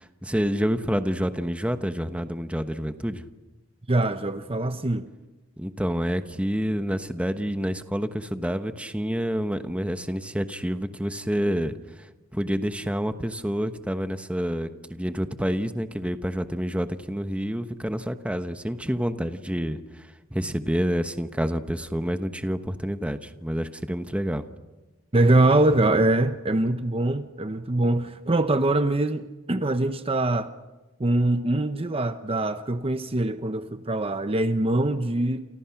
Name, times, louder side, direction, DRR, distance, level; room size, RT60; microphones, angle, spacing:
voice 1, 0.0-3.2 5.6-24.4, equal, 5° right, 1.1 m, -28 dB
voice 2, 3.9-5.1 25.1-30.5 31.0-35.5, right 2 dB, 25° right, 0.9 m, -23 dB
29.5 x 28.0 x 5.9 m
head